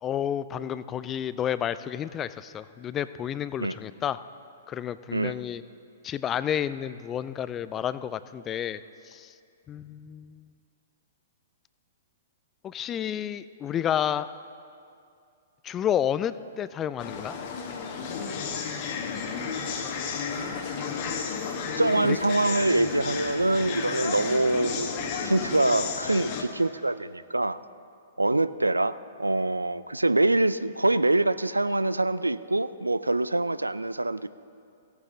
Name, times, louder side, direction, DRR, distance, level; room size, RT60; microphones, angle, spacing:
voice 1, 0.0-4.2 4.7-5.6 6.0-9.3 9.7-10.5 12.6-14.3 15.6-17.3 22.1-22.2, left 10 dB, 20° left, 15 dB, 0.3 m, -30 dB
sound 1, 17.0-26.4, left 5 dB, 40° left, 1.1 m, -32 dB
voice 2, 21.8-27.6 28.2-34.3, right 2 dB, 85° right, 16 dB, 0.3 m, -25 dB
16.5 x 9.0 x 3.8 m, 2.4 s
figure-of-eight pair, 110°, 0 cm